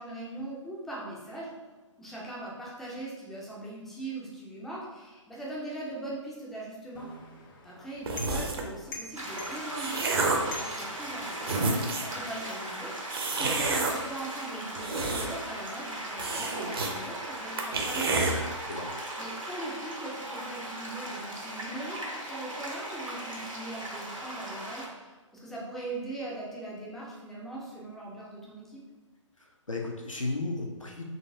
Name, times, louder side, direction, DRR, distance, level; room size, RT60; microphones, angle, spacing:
voice 1, 0.0-1.5 2.0-7.1 7.6-12.9 13.4-18.5 19.2-25.1 25.4-28.8, right 2 dB, ahead, -5 dB, 0.3 m, -40 dB
sound 1, 6.9-11.6, left 2 dB, 40° left, 0.7 m, -46 dB
sound 2, 8.1-8.7 9.4-10.5 11.1-11.2 11.4-12.2 13.1-13.9 14.6-15.5 15.8-15.9 16.2-16.9 17.2-17.3 17.6-18.3, right 3 dB, 50° right, 0.6 m, -29 dB
sound 3, 9.2-24.9, right 1 dB, 90° right, 1.1 m, -38 dB
voice 2, 29.4-31.1, left 2 dB, 85° left, 0 dB, 0.7 m, -34 dB
4.0 x 3.1 x 2.6 m, 1.3 s
figure-of-eight pair, 130°, 16 cm